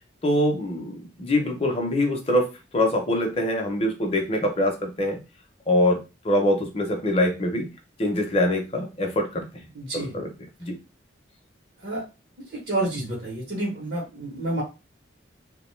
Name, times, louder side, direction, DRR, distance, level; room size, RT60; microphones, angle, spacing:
voice 1, 0.2-2.5 2.7-5.2 5.7-6.0 6.2-7.7 8.0-9.4 9.9-10.3 10.6-10.7, left 1 dB, 30° left, 3 dB, 0.6 m, -24 dB
voice 2, 9.7-10.1 11.8-12.0 12.5-14.6, right 1 dB, 60° right, -3 dB, 0.8 m, -29 dB
2.6 x 2.1 x 3.1 m, 0.29 s
head